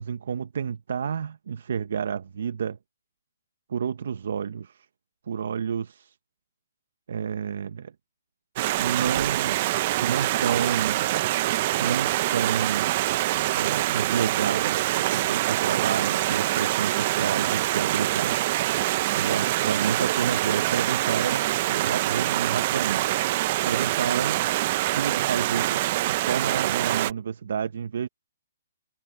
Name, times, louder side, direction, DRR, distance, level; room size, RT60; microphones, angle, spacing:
voice 1, 0.0-2.8 3.7-4.9 5.3-6.2 7.1-7.9 8.8-9.7 10.0-11.1 11.8-12.9 13.5-18.4 19.1-23.0 23.3-24.4 24.9-28.1, right 7 dB, 65° right, 1.1 m, -30 dB
Stream, 8.6-27.1, right 16 dB, 35° right, 0.7 m, -25 dB
hypercardioid pair, 160°, 0 cm